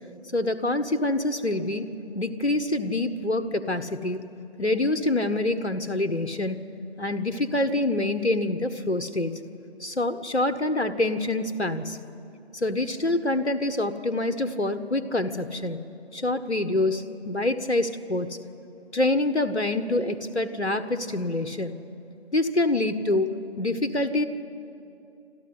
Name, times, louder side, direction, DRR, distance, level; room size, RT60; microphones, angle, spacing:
voice 1, 0.3-1.8 2.1-4.2 4.6-6.6 7.0-9.3 9.8-12.0 12.5-15.8 16.1-18.3 18.9-21.7 22.3-24.3, left 2 dB, 90° left, 8 dB, 1.5 m, -26 dB
27.5 x 13.0 x 9.9 m, 2.7 s
figure-of-eight pair, 155°, 33 cm